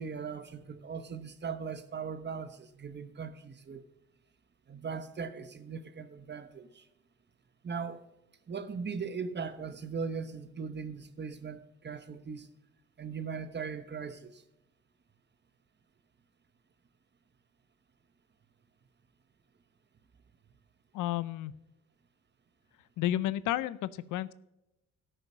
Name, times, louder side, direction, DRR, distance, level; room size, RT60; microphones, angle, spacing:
voice 1, 0.0-3.8 4.7-6.8 7.6-8.1 8.5-12.5 13.0-14.4, right 5 dB, 35° right, 1.1 m, -39 dB
voice 2, 20.9-21.5 23.0-24.3, left 13 dB, 85° left, 0.6 m, -31 dB
13.5 x 6.7 x 5.1 m
cardioid pair, 90°, 30 cm